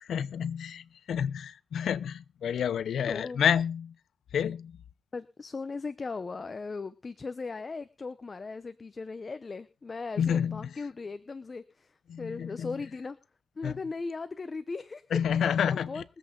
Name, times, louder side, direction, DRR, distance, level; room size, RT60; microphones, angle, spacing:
voice 1, 0.0-3.9 4.3-4.8 10.2-10.6 12.1-12.7 13.6-13.8 15.1-15.9, left 8 dB, 85° left, 0.7 m, -29 dB
voice 2, 3.1-3.4 5.1-13.2 13.6-16.0, left 4 dB, 35° left, 0.8 m, -38 dB
23.5 x 8.1 x 3.9 m
cardioid pair, 105°, 0 cm